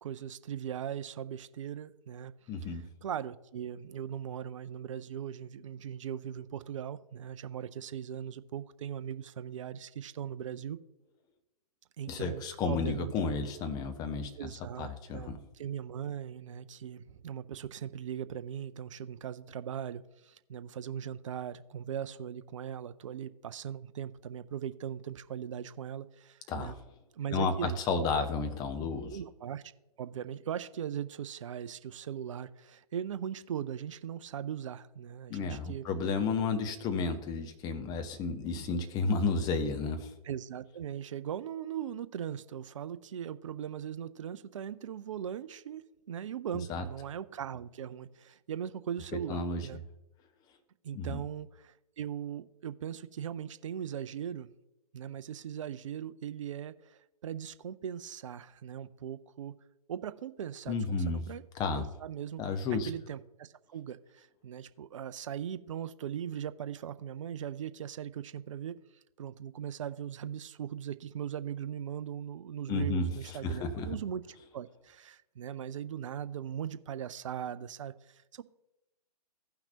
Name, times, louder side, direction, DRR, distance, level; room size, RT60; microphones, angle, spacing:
voice 1, 0.0-2.3 2.6-10.8 12.0-13.1 14.4-26.7 27.1-27.8 29.0-29.6 30.0-35.8 40.2-49.8 50.8-54.5 54.9-59.5 59.9-61.4 61.7-62.4 62.7-68.8 69.2-74.2 74.5-78.4, right 9 dB, 50° right, 13 dB, 0.5 m, -39 dB
voice 2, 2.5-2.8 12.1-14.4 14.8-15.4 26.5-26.8 27.3-29.2 35.3-40.1 46.7-46.8 49.3-49.7 50.9-51.2 60.7-61.2 61.6-61.8 62.4-62.9 72.7-73.1 73.4-73.9, left 4 dB, 20° left, 7 dB, 0.9 m, -32 dB
16.0 x 5.9 x 2.9 m, 0.95 s
figure-of-eight pair, 125°, 21 cm